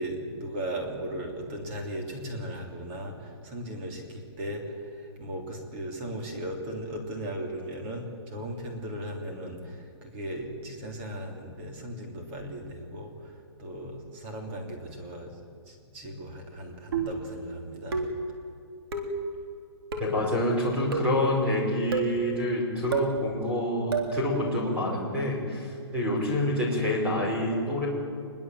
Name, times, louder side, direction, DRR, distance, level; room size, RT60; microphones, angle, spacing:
voice 1, 0.0-4.9 5.2-13.3 13.6-15.4 15.7-18.1, right 1 dB, 25° right, 1 dB, 3.4 m, -37 dB
sound 1, 16.9-17.3 17.9-18.3 18.9-19.2 19.9-20.2 20.9-21.2 21.9-22.2 22.9-23.2 23.9-24.2, right 4 dB, 55° right, 3.7 m, -30 dB
voice 2, 20.0-27.9, left 1 dB, 5° right, -3 dB, 5.2 m, -27 dB
25.0 x 22.0 x 7.8 m, 2.4 s
hypercardioid pair, 170°, 15 cm